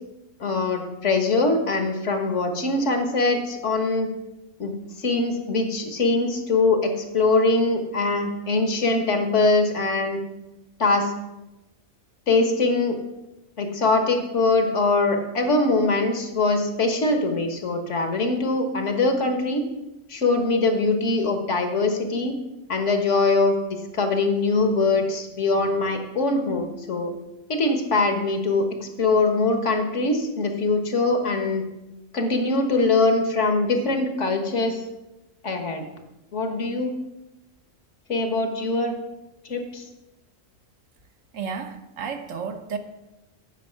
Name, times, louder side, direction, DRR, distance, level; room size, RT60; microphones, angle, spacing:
voice 1, 0.4-4.1 4.6-10.2 10.8-11.1 12.3-13.0 13.6-19.6 20.1-22.3 22.7-23.6 23.9-27.1 27.5-31.6 32.1-34.8 35.4-35.9 36.3-36.9 38.1-39.0 39.5-39.8, left 3 dB, 65° left, 6 dB, 1.6 m, -22 dB
voice 2, 41.3-42.8, right 6 dB, 70° right, 7 dB, 1.3 m, -32 dB
8.9 x 5.3 x 7.3 m, 0.97 s
omnidirectional pair, 1.4 m